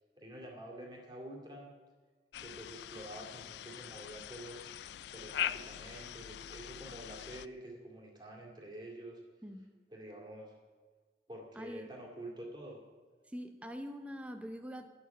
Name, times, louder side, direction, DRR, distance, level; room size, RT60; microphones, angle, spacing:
voice 1, 0.2-1.7 2.4-4.8 5.1-9.2 9.9-10.6 11.3-12.8, right 1 dB, 25° right, -2 dB, 2.2 m, -48 dB
sound 1, 2.3-7.5, left 10 dB, 75° left, 0.3 m, -42 dB
voice 2, 11.6-11.9 13.3-14.9, equal, 5° right, 7 dB, 0.6 m, -44 dB
10.5 x 7.2 x 8.4 m, 1.5 s
head